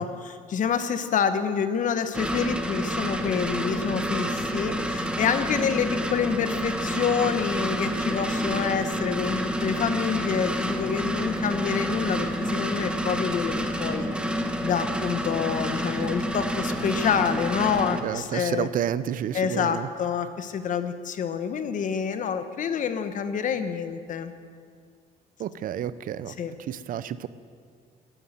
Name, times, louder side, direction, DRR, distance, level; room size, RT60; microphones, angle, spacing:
voice 1, 0.0-14.1 14.6-18.7 19.3-24.3 26.4-26.5, left 7 dB, 50° left, 10 dB, 1.1 m, -27 dB
sound 1, 2.1-18.0, equal, 5° right, 1.1 m, -28 dB
voice 2, 18.0-19.9 25.4-26.3 26.7-27.3, right 10 dB, 55° right, 15 dB, 0.6 m, -30 dB
12.5 x 11.0 x 7.9 m, 2.1 s
cardioid pair, 110°, 17 cm